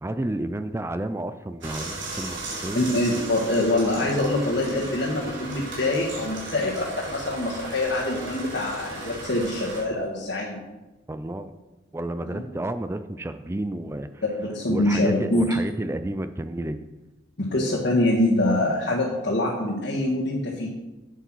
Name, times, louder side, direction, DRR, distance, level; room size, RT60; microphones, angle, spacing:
voice 1, 0.0-2.8 11.1-11.5 11.9-14.2 14.7-16.8, right 1 dB, 15° right, 10 dB, 0.4 m, -31 dB
sound 1, 1.6-9.8, right 2 dB, 90° right, 3.7 m, -36 dB
voice 2, 2.7-10.6 12.3-12.4 14.4-15.5 17.4-20.7, left 1 dB, 60° left, -4 dB, 1.7 m, -24 dB
8.3 x 7.9 x 6.1 m, 1.1 s
head